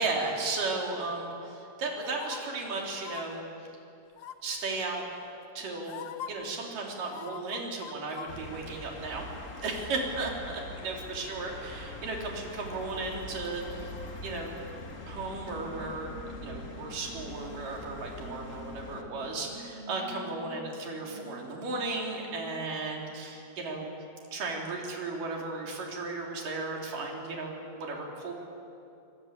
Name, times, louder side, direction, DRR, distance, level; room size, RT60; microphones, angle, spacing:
voice 1, 0.0-3.4 4.4-5.0 5.5-9.3 9.6-13.9 14.2-14.5 15.0-23.9 24.3-28.5, right 3 dB, 70° right, -1 dB, 5.1 m, -35 dB
sound 1, 2.0-2.4 3.0-3.2 4.2-4.6 5.4-5.5 5.9-6.3 7.0-8.3 8.6-8.7, left 10 dB, 80° left, 1.2 m, -42 dB
sound 2, 8.3-19.0, left 1 dB, 30° left, 1.9 m, -43 dB
sound 3, 15.3-22.6, equal, 15° right, 4.3 m, -48 dB
25.0 x 23.5 x 8.9 m, 2.6 s
omnidirectional pair, 3.9 m